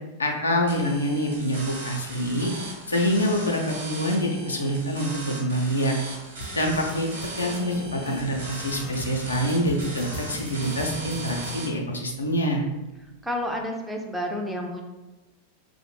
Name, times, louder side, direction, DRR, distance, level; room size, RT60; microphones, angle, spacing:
voice 1, 0.2-2.5 2.9-5.9 6.6-12.6, equal, 80° left, 1 dB, 0.4 m, -26 dB
sound 1, 0.7-11.7, right 2 dB, 60° right, 0.9 m, -38 dB
sound 2, 6.4-11.7, left 1 dB, 45° left, 0.7 m, -39 dB
voice 2, 13.2-14.8, equal, 5° right, 1 dB, 0.4 m, -30 dB
2.5 x 2.0 x 3.1 m, 1.1 s
figure-of-eight pair, 90°, 0 cm